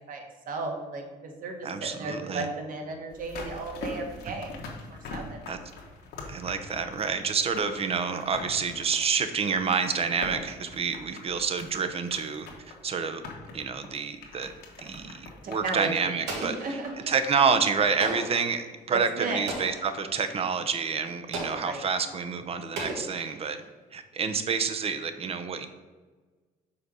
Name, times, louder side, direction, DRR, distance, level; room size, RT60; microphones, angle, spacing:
voice 1, 0.1-5.4 15.4-17.1 18.9-19.4 21.6-21.9, right 3 dB, 55° right, 3 dB, 1.4 m, -35 dB
voice 2, 1.6-2.5 4.3-4.4 5.5-5.6 6.3-13.2 13.5-14.5 14.8-16.8 17.1-23.6 23.9-25.7, right 5 dB, 35° right, 9 dB, 0.7 m, -28 dB
sound 1, 3.1-17.1 17.4-17.5, left 3 dB, 75° left, 1.5 m, -43 dB
Explosion, 16.3-17.2 18.0-18.5 19.5-20.0 21.3-21.9 22.7-23.6, right 2 dB, 90° right, 1.5 m, -36 dB
5.7 x 4.1 x 6.2 m, 1.3 s
cardioid pair, 110°, 17 cm